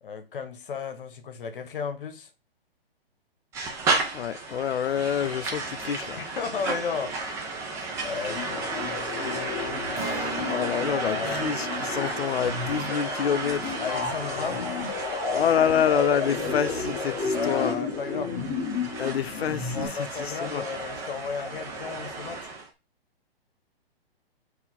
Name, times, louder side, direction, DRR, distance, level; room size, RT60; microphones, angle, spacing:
voice 1, 0.0-2.3 6.2-7.2 8.0-9.8 11.0-11.4 13.8-14.8 17.3-18.4 19.7-22.5, left 6 dB, 60° left, 1.0 m, -34 dB
sound 1, 3.5-22.7, right 3 dB, 10° right, 0.5 m, -33 dB
voice 2, 4.1-6.2 10.5-13.8 15.3-17.7 19.0-20.7, left 8 dB, 80° left, 0.5 m, -27 dB
sound 2, 8.3-19.9, left 4 dB, 20° left, 0.9 m, -32 dB
Acoustic guitar, 10.0-15.4, right 3 dB, 35° right, 1.3 m, -42 dB
4.0 x 2.8 x 3.9 m
figure-of-eight pair, 125°, 30 cm